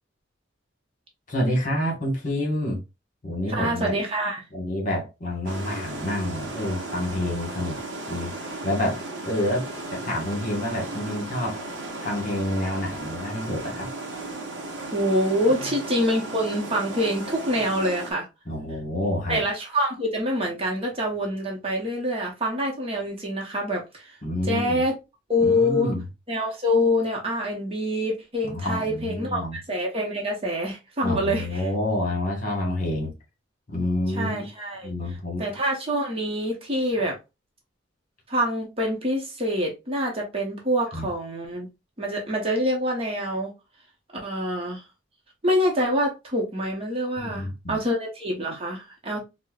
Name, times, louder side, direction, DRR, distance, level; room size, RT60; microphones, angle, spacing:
voice 1, 1.3-2.8 3.2-4.0 4.5-7.8 8.1-8.3 8.6-9.6 9.9-11.6 12.0-13.9 15.5-15.6 18.5-19.4 24.2-24.8 25.4-26.0 28.4-29.6 31.0-33.1 33.7-34.5 34.8-35.4 40.9-41.1 47.2-47.8, left 1 dB, 45° left, 1.3 m, -28 dB
voice 2, 3.5-4.4 14.9-18.3 19.3-24.2 24.4-24.9 25.3-25.9 26.3-31.7 34.1-34.9 35.4-37.2 38.3-41.7 42.0-43.5 44.2-44.8 45.4-49.2, equal, 30° right, 0.8 m, -26 dB
sound 1, 5.5-18.1, right 2 dB, 65° right, 0.7 m, -35 dB
4.2 x 2.1 x 2.3 m
head